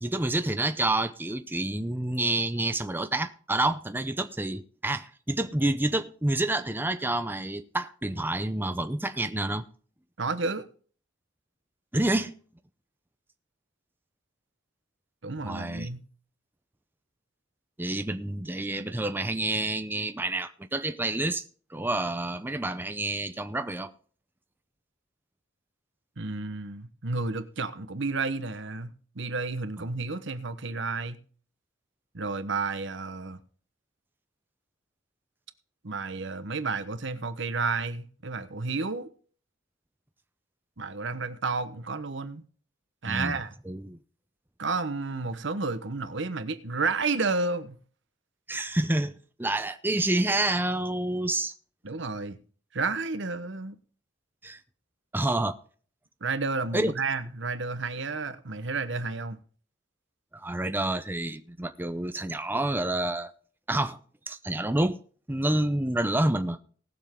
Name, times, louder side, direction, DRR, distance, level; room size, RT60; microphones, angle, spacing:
voice 1, 0.0-9.7 11.9-12.3 15.5-15.9 17.8-21.4 21.7-23.9 43.1-43.4 43.7-44.0 48.5-49.1 49.4-51.5 54.4-54.6 55.1-55.6 56.7-56.9 60.3-63.3 63.7-64.0 64.3-65.0 65.3-66.6, right 2 dB, 10° right, 0.6 m, -28 dB
voice 2, 10.2-10.7 15.2-16.0 26.2-31.2 32.1-33.4 35.8-39.1 40.8-42.4 43.0-43.5 44.6-47.8 51.8-52.4 52.7-53.7 56.2-59.4, right 4 dB, 65° right, 1.1 m, -31 dB
19.0 x 7.2 x 3.7 m
head